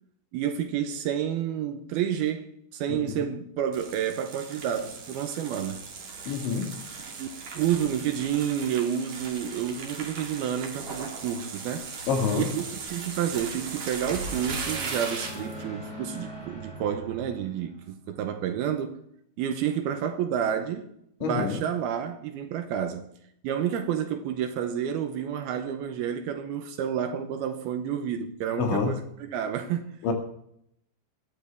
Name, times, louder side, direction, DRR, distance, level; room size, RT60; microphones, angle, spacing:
voice 1, 0.3-5.8 6.2-6.3 7.1-11.9 12.4-19.0 19.4-20.9 21.2-23.1 23.4-30.0, right 9 dB, 75° right, 2.5 m, -30 dB
voice 2, 2.9-3.3 6.3-6.8 12.1-12.5 21.2-21.6 28.6-28.9 30.0-30.1, left 5 dB, 90° left, 4.6 m, -27 dB
sound 1, 3.7-15.6, right 4 dB, 45° right, 3.0 m, -38 dB
sound 2, 13.5-18.0, right 1 dB, 25° right, 8.3 m, -41 dB
20.5 x 14.0 x 3.5 m
omnidirectional pair, 5.1 m